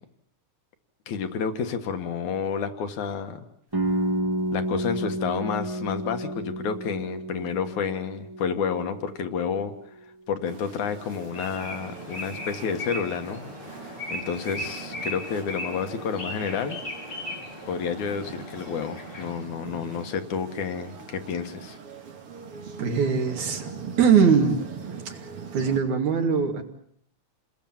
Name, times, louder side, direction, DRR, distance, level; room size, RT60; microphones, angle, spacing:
voice 1, 1.1-3.5 4.5-9.7 10.3-16.8 17.7-21.8, left 6 dB, 85° left, 7 dB, 3.0 m, -30 dB
sound 1, 3.7-9.5, right 1 dB, 15° right, 1.0 m, -30 dB
sound 2, 10.4-25.8, right 6 dB, 50° right, 2.9 m, -42 dB
sound 3, 11.3-19.3, left 1 dB, 35° left, 5.4 m, -37 dB
voice 2, 22.8-23.7 24.0-24.6 25.1-25.2 25.5-26.6, right 6 dB, 80° right, 4 dB, 3.9 m, -21 dB
28.5 x 20.5 x 7.3 m, 0.69 s
omnidirectional pair, 3.3 m